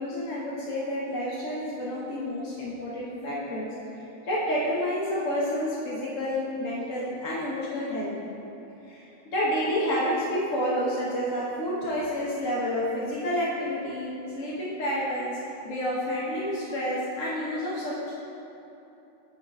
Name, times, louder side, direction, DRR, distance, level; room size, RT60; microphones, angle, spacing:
voice 1, 0.0-8.2 8.8-14.1 14.3-15.4 15.6-18.1, equal, 50° left, -6 dB, 1.0 m, -29 dB
9.0 x 4.8 x 5.3 m, 3.0 s
omnidirectional pair, 2.4 m